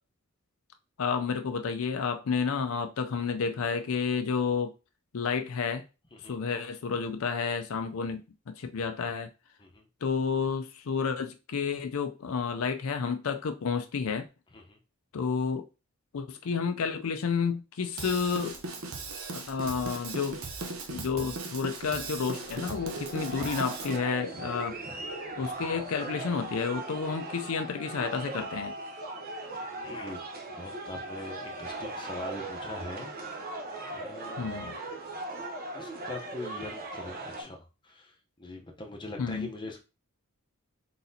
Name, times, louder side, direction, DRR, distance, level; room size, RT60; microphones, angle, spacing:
voice 1, 1.0-4.7 5.1-5.8 6.2-8.2 8.5-9.3 10.0-14.3 15.1-15.6 16.1-18.6 19.5-20.4 20.9-25.0 25.4-28.7 34.4-34.8 39.2-39.5, left 5 dB, 75° left, 0.5 m, -30 dB
Drum kit / Drum, 18.0-24.0, right 3 dB, 75° right, 0.8 m, -38 dB
sound 1, 22.2-37.4, right 2 dB, 45° right, 0.8 m, -39 dB
voice 2, 29.7-30.2 30.5-33.1 33.8-34.8 35.4-39.8, left 2 dB, 20° left, 0.8 m, -42 dB
4.1 x 4.0 x 2.7 m
head